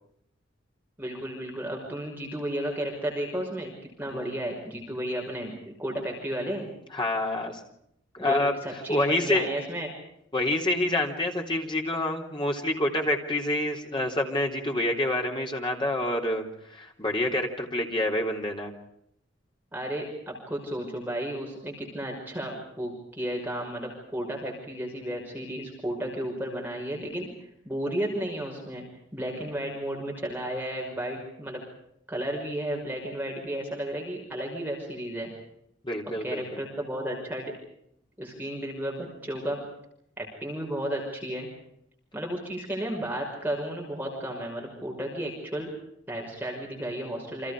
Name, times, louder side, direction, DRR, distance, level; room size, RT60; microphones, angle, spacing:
voice 1, 1.0-3.7 4.0-6.7 8.2-9.9 19.7-27.3 27.7-28.8 29.1-31.6 32.1-35.3 36.2-37.5 38.2-39.6 40.2-41.5 42.1-45.7 46.1-47.5, right 1 dB, 10° right, -1 dB, 5.8 m, -33 dB
voice 2, 6.9-7.6 8.1-8.5 8.9-9.5 10.3-18.7 35.8-36.6, left 1 dB, 25° left, 1 dB, 3.8 m, -27 dB
30.0 x 27.0 x 5.1 m, 0.75 s
head